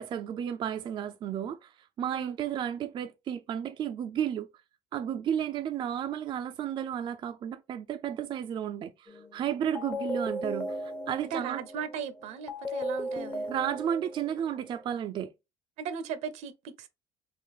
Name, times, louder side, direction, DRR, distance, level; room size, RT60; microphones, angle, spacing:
voice 1, 0.0-4.5 4.9-11.6 13.5-15.3, right 9 dB, 45° right, 0.4 m, -33 dB
sound 1, 9.1-9.4 9.7-14.9, equal, 20° left, 0.7 m, -36 dB
voice 2, 11.2-13.5 15.8-16.9, right 7 dB, 75° right, 0.7 m, -37 dB
3.8 x 2.5 x 2.9 m
cardioid pair, 115°, 12 cm